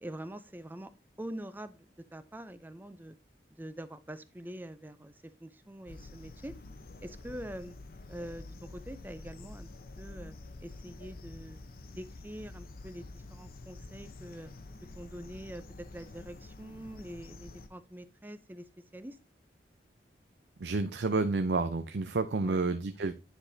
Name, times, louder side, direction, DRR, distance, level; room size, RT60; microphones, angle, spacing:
voice 1, 0.0-0.9 1.2-3.2 3.5-6.6 7.0-7.7 8.1-9.7 10.0-10.3 10.6-11.6 12.0-14.5 14.9-19.2 22.4-22.7, right 1 dB, 10° right, 12 dB, 0.5 m, -45 dB
sound 1, 5.9-17.7, left 2 dB, 55° left, 0.7 m, -48 dB
voice 2, 20.6-23.1, right 3 dB, 75° right, 9 dB, 0.6 m, -30 dB
9.8 x 5.0 x 2.7 m, 0.31 s
head